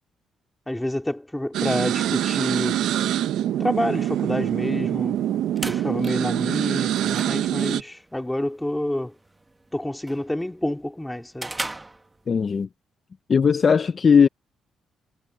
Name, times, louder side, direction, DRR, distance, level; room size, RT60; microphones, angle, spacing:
voice 1, 0.7-2.9 3.6-5.2 5.7-9.1 9.7-11.5, left 1 dB, 5° left, 2.6 m, -28 dB
sound 1, 1.5-7.8, right 11 dB, 90° right, 0.7 m, -24 dB
sound 2, 5.2-12.6, right 2 dB, 10° right, 1.4 m, -40 dB
voice 2, 12.3-12.7 13.3-14.3, left 6 dB, 30° left, 0.4 m, -18 dB
cardioid pair, 170°, 0 cm